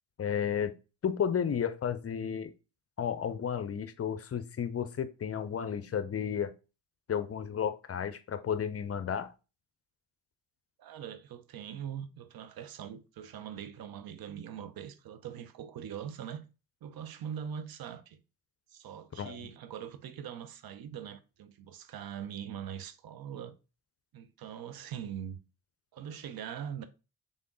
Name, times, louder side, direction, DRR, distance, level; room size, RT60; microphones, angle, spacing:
voice 1, 0.2-0.7 1.0-2.5 3.0-6.5 7.1-9.3 19.2-19.5, left 8 dB, 35° left, 0.6 m, -32 dB
voice 2, 10.8-16.4 16.8-18.2 18.7-23.6 24.1-25.4 25.9-26.8, right 9 dB, 55° right, 0.8 m, -42 dB
3.6 x 3.6 x 3.8 m
hypercardioid pair, 50°, 43 cm